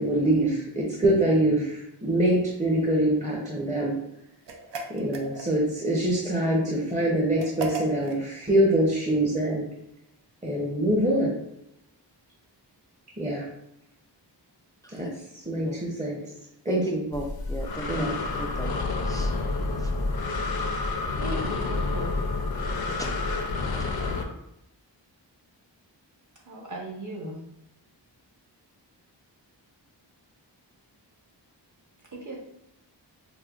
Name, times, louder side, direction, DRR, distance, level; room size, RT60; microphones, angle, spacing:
voice 1, 0.0-3.9 4.9-9.7 10.4-11.3 13.2-13.4 14.9-15.1 15.3-16.2 16.7-17.0 17.9-18.1, right 1 dB, 15° right, -4 dB, 0.7 m, -24 dB
sound 1, 4.5-5.8 7.4-8.2, right 2 dB, 75° right, 0.6 m, -35 dB
voice 2, 16.7-18.1 18.4-18.7 19.0-19.3 19.8-19.9 23.0-23.4, equal, 10° left, 2 dB, 0.3 m, -36 dB
Breathing, 17.1-24.2, left 3 dB, 55° left, 0.6 m, -29 dB
voice 3, 21.1-22.1 26.4-27.4 32.1-32.4, right 1 dB, 45° right, -1 dB, 1.0 m, -36 dB
4.9 x 2.1 x 2.4 m, 0.82 s
wide cardioid pair, 70°, 44 cm